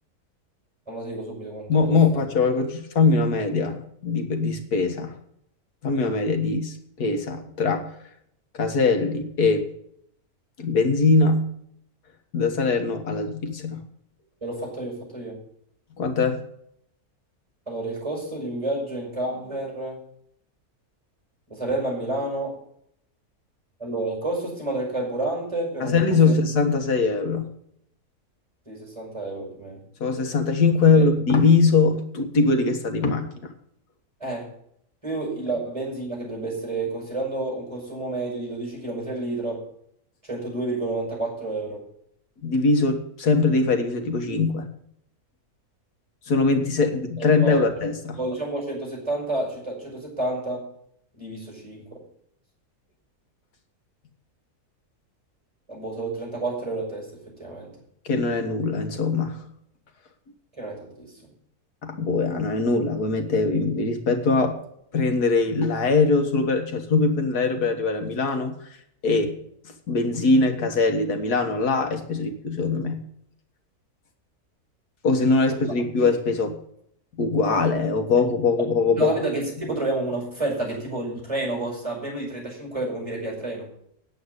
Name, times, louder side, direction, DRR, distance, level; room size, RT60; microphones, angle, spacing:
voice 1, 0.9-2.2 14.4-15.4 17.7-20.0 21.5-22.6 23.8-26.3 28.7-29.8 30.9-31.0 34.2-34.5 35.0-39.7 40.2-41.8 47.2-47.7 48.2-50.7 51.1-52.0 55.7-57.7 60.5-61.1 78.9-83.7, right 2 dB, 20° right, -1 dB, 5.8 m, -30 dB
voice 2, 1.7-5.1 5.8-7.9 8.5-9.7 10.6-11.5 12.3-13.8 16.0-16.4 25.8-27.5 30.0-33.3 42.4-44.7 46.3-48.2 58.1-59.5 61.8-64.6 64.9-68.6 69.0-69.4 69.9-73.1 75.0-76.6 77.2-79.1, left 4 dB, 90° left, 5 dB, 2.0 m, -22 dB
9.5 x 8.2 x 8.1 m, 0.71 s
omnidirectional pair, 1.6 m